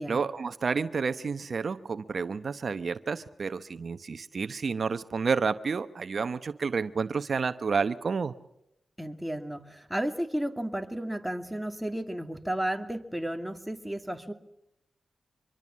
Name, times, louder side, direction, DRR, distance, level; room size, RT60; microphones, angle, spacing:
voice 1, 0.1-8.3, right 5 dB, 65° right, 13 dB, 0.9 m, -30 dB
voice 2, 9.0-14.3, right 1 dB, 5° right, 6 dB, 2.6 m, -33 dB
25.0 x 23.5 x 7.4 m, 0.84 s
cardioid pair, 55°, 0 cm